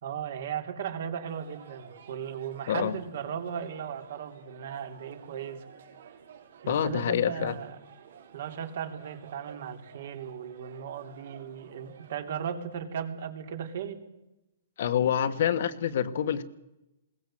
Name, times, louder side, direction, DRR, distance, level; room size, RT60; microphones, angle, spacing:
voice 1, 0.0-5.7 6.6-7.8 8.3-14.0, right 8 dB, 55° right, 6 dB, 3.1 m, -36 dB
sound 1, 1.2-12.4, right 7 dB, 70° right, 4.3 m, -53 dB
voice 2, 6.7-7.5 14.8-16.4, left 9 dB, 55° left, 11 dB, 1.4 m, -27 dB
21.5 x 18.0 x 7.7 m, 0.92 s
hypercardioid pair, 165°, 0 cm